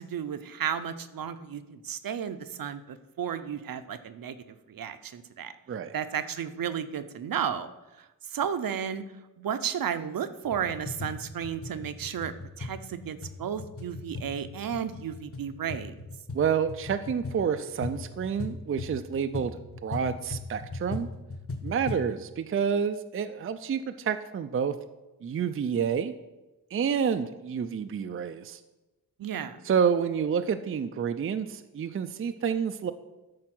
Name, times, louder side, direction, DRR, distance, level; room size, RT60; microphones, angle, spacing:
voice 1, 0.0-5.5 5.9-7.7 8.0-9.0 9.4-16.0 29.2-29.6, right 8 dB, 65° right, 11 dB, 0.7 m, -33 dB
sound 1, 10.4-22.1, left 3 dB, 35° left, 1.3 m, -39 dB
voice 2, 16.3-21.1 21.6-24.7 25.2-26.1 26.7-28.6 29.7-32.9, right 7 dB, 35° right, 9 dB, 0.4 m, -29 dB
12.5 x 4.7 x 6.0 m, 1.0 s
wide cardioid pair, 160°, 37 cm